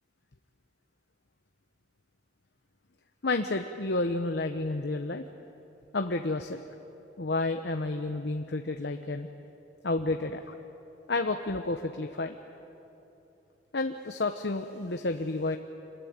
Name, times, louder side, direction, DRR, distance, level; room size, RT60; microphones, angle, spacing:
voice 1, 3.2-5.2 5.9-6.6 7.2-9.3 9.8-10.5 11.1-12.4 13.7-15.6, left 2 dB, 60° left, 6 dB, 0.9 m, -30 dB
27.0 x 21.5 x 9.5 m, 3.0 s
head